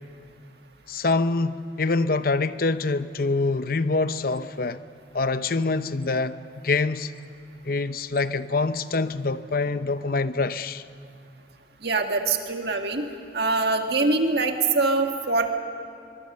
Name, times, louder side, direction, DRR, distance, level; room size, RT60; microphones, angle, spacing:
voice 1, 0.9-4.8 5.1-6.4 6.6-7.1 7.6-10.8, left 3 dB, 55° left, 0.7 m, -25 dB
voice 2, 11.8-13.1 13.3-15.5, right 3 dB, 65° right, 1.8 m, -23 dB
23.5 x 22.5 x 6.7 m
head